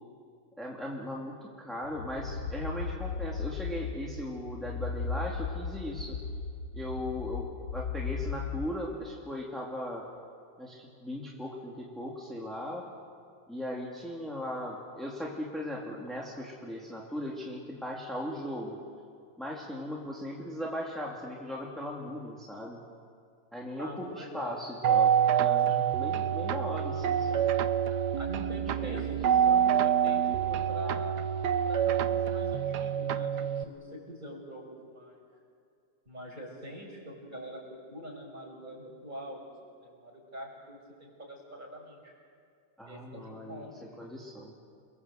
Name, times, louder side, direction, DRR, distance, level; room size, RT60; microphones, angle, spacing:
voice 1, 0.6-6.2 6.7-10.1 10.6-12.8 13.5-18.8 19.4-22.8 23.5-27.5 28.8-29.1 42.8-44.5, equal, ahead, -3 dB, 2.8 m, -38 dB
sound 1, 1.8-8.7, left 5 dB, 85° left, 1.7 m, -36 dB
voice 2, 23.8-24.6 25.7-25.8 27.6-27.7 28.2-31.2 31.6-35.2 36.1-39.5 39.8-42.1 42.9-44.0, equal, 25° right, -1 dB, 6.3 m, -44 dB
sound 2, 24.8-33.6, right 9 dB, 75° right, 1.4 m, -27 dB
29.5 x 22.5 x 7.9 m, 2.3 s
omnidirectional pair, 1.8 m